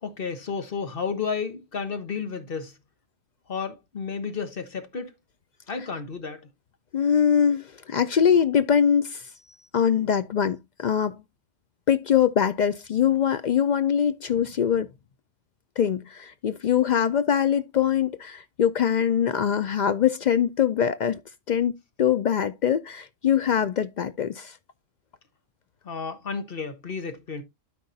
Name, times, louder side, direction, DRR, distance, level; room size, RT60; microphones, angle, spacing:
voice 1, 0.0-2.8 3.5-5.1 5.7-6.5 25.8-27.4, left 5 dB, 50° left, 1.3 m, -32 dB
voice 2, 6.9-9.3 9.7-11.2 11.9-14.9 15.8-21.2 21.5-24.6, left 8 dB, 70° left, 0.4 m, -23 dB
12.5 x 4.7 x 2.6 m
omnidirectional pair, 1.3 m